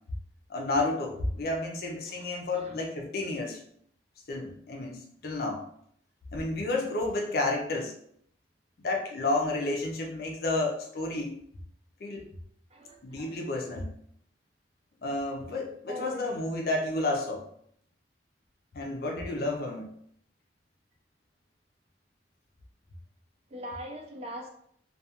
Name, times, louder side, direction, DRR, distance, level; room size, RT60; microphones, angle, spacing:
voice 1, 0.5-3.6 4.3-5.6 6.3-7.9 8.8-11.4 12.0-12.3 13.0-13.9 15.0-17.5 18.7-19.9, left 2 dB, 55° left, 1 dB, 0.5 m, -31 dB
voice 2, 12.7-13.3 15.9-16.2 23.5-24.5, equal, 35° right, 2 dB, 0.4 m, -41 dB
2.3 x 2.3 x 2.8 m, 0.67 s
head